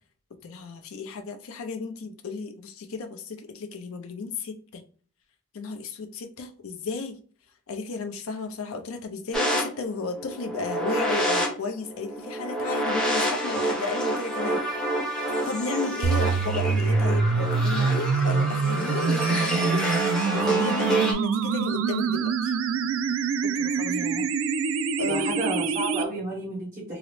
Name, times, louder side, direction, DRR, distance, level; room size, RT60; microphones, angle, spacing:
voice 1, 0.4-4.8 5.5-7.2 7.7-14.6 15.1-22.5 23.4-24.0 25.0-25.4, left 4 dB, 80° left, 0.5 m, -34 dB
sound 1, 9.3-21.1, right 1 dB, 5° left, 0.5 m, -28 dB
sound 2, 16.0-26.0, right 5 dB, 70° right, 0.3 m, -25 dB
voice 2, 23.8-24.2 25.1-27.0, right 1 dB, 40° right, 1.4 m, -32 dB
3.8 x 2.0 x 3.0 m
head